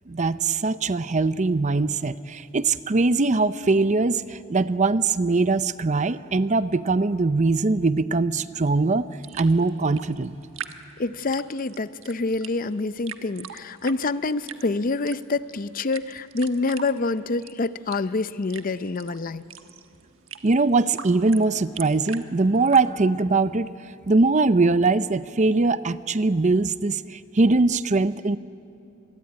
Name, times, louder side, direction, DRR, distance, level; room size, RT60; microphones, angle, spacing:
voice 1, 0.1-9.0 9.4-10.3 20.4-23.7 24.1-28.4, right 3 dB, 35° right, 14 dB, 0.6 m, -21 dB
sound 1, 9.1-22.8, right 8 dB, 65° right, 1.3 m, -42 dB
voice 2, 11.0-19.5, left 3 dB, 40° left, 14 dB, 0.6 m, -27 dB
26.0 x 22.0 x 9.4 m, 2.6 s
head